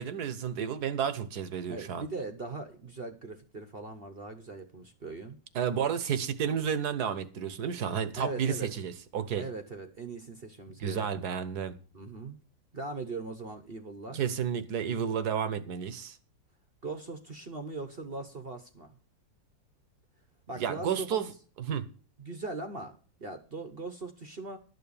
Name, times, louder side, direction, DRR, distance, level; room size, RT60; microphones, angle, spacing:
voice 1, 0.0-2.1 5.5-9.4 10.8-11.7 14.1-16.2 20.5-21.3 21.6-21.8, right 8 dB, 65° right, 1.4 m, -31 dB
voice 2, 1.7-5.4 8.2-8.7 9.4-11.1 11.9-12.4 12.7-14.2 16.8-19.0 20.5-21.2 22.2-24.6, right 3 dB, 40° right, 0.9 m, -40 dB
12.0 x 6.8 x 7.0 m
omnidirectional pair, 2.0 m